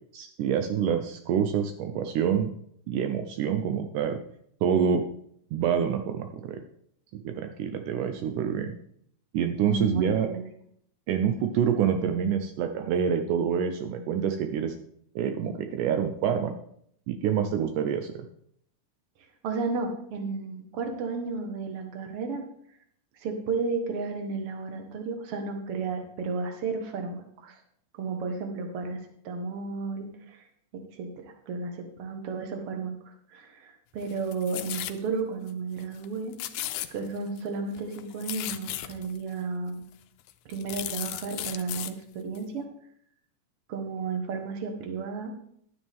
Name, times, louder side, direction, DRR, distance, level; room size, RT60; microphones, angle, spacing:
voice 1, 0.1-2.5 2.9-4.2 4.6-5.1 5.5-6.6 7.1-8.8 9.3-10.3 11.1-14.7 15.2-16.6 17.1-18.1, right 8 dB, 80° right, 6 dB, 2.2 m, -27 dB
voice 2, 9.7-10.4 19.4-22.4 23.2-27.6 27.9-30.4 30.9-36.4 36.9-39.8 40.5-42.7 43.7-45.3, right 4 dB, 50° right, 4 dB, 2.1 m, -33 dB
sound 1, 34.0-35.0 35.5-35.6 35.8-36.1 36.3-37.4 37.7-39.2 39.8-39.9 40.3-41.9 42.3-42.4, left 13 dB, 80° left, 1.9 m, -36 dB
11.5 x 9.6 x 3.6 m, 0.67 s
omnidirectional pair, 3.7 m